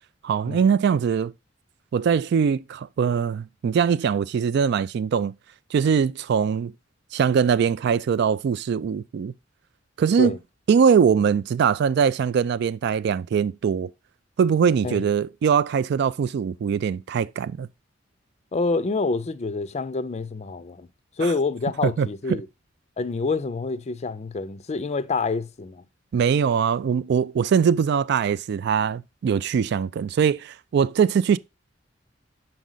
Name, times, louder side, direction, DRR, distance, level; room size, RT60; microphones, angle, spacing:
voice 1, 0.2-1.3 1.9-5.3 5.7-6.7 7.1-9.3 10.0-10.4 10.7-13.9 14.4-17.7 21.2-21.3 21.8-22.4 26.1-31.4, right 7 dB, 60° right, 0.3 m, -22 dB
voice 2, 18.5-20.9 21.2-22.5 23.0-25.8, left 3 dB, 35° left, 0.4 m, -27 dB
6.2 x 4.5 x 3.9 m
head